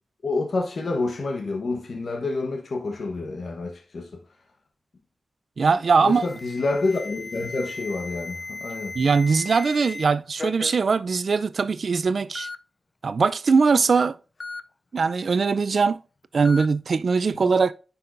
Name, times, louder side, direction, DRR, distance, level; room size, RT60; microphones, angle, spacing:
voice 1, 0.2-4.2 6.0-8.9 17.4-17.5, left 3 dB, 70° left, 1.2 m, -28 dB
voice 2, 5.6-6.2 9.0-12.5 13.0-14.2 14.9-16.0 16.3-17.7, right 5 dB, 75° right, 0.4 m, -21 dB
Alarm, 6.1-10.1 10.4-10.8 11.6-11.7 12.4-12.6 14.4-14.6 16.4-16.7, left 3 dB, 50° left, 0.4 m, -36 dB
9.8 x 5.6 x 2.6 m
cardioid pair, 50°, 0 cm